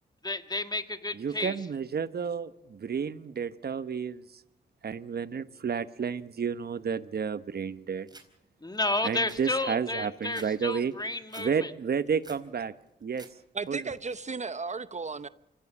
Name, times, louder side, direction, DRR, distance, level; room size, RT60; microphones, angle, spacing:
voice 1, 0.2-1.6 8.6-11.7, left 2 dB, 20° left, 1.8 m, -31 dB
voice 2, 1.1-4.2 4.8-8.1 9.0-10.9 11.4-12.7 13.0-13.3 13.7-13.8, right 6 dB, 60° right, 1.1 m, -31 dB
sound 1, 8.1-8.3 8.7-8.8 9.1-10.5 10.8-11.5 11.9-12.5 12.9-13.3 13.6-14.1, right 2 dB, 20° right, 4.4 m, -51 dB
voice 3, 13.5-15.3, right 4 dB, 40° right, 0.7 m, -35 dB
25.5 x 16.0 x 7.3 m
cardioid pair, 60°, 19 cm